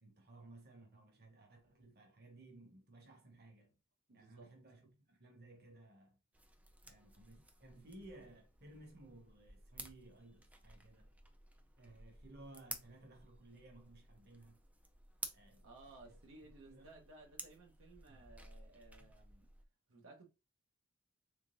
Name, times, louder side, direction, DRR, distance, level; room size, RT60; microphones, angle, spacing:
voice 1, 0.0-3.7 4.1-4.8 5.1-6.2 6.8-11.1 11.8-14.6 15.3-15.7 16.0-16.2 16.6-16.9 18.1-18.3 19.0-19.1, right 2 dB, 50° right, 1.2 m, -58 dB
voice 2, 4.1-4.5 7.7-7.9 15.6-19.5 19.9-20.3, right 2 dB, 85° right, 1.0 m, -59 dB
sound 1, 6.3-19.6, right 1 dB, 5° right, 0.4 m, -54 dB
3.7 x 3.5 x 2.5 m
head